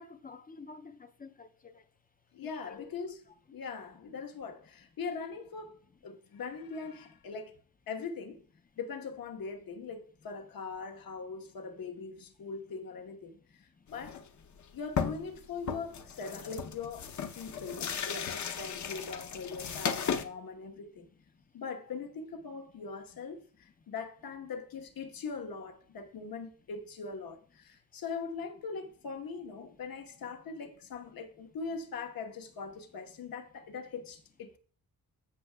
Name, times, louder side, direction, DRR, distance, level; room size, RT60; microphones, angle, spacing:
voice 1, 0.0-1.8 2.4-2.9, left 4 dB, 25° left, 0.4 m, -50 dB
voice 2, 2.3-3.2 3.5-7.6 7.9-8.4 8.8-14.2 14.7-17.1 17.3-21.1 21.5-34.6, left 5 dB, 70° left, 1.2 m, -41 dB
sound 1, 13.9-14.3 14.6-14.7 15.0-15.4 15.7-20.2, left 7 dB, 50° left, 0.7 m, -36 dB
14.0 x 6.5 x 2.2 m
wide cardioid pair, 170°, 36 cm